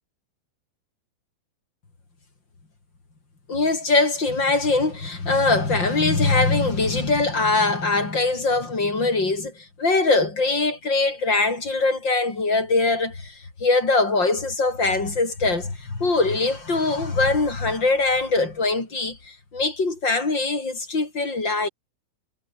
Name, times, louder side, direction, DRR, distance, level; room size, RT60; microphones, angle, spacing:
voice 1, 3.5-21.7, left 3 dB, 30° left, 4.8 m, -22 dB
omnidirectional pair, 4.4 m